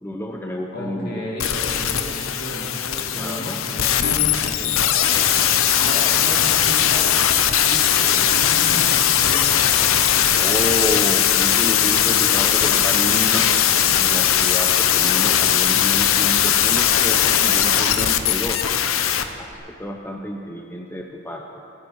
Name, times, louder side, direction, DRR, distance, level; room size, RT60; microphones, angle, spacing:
voice 1, 0.0-1.3 3.2-3.6 10.3-13.5 13.9-18.6 19.4-21.5, equal, 10° left, 1 dB, 0.7 m, -30 dB
voice 2, 0.7-5.2 5.7-7.1 7.6-9.9, equal, 55° left, -6 dB, 4.2 m, -33 dB
sound 1, 1.4-19.2 19.5-19.6, left 9 dB, 85° left, 0.8 m, -19 dB
27.0 x 9.6 x 4.8 m, 2.7 s
head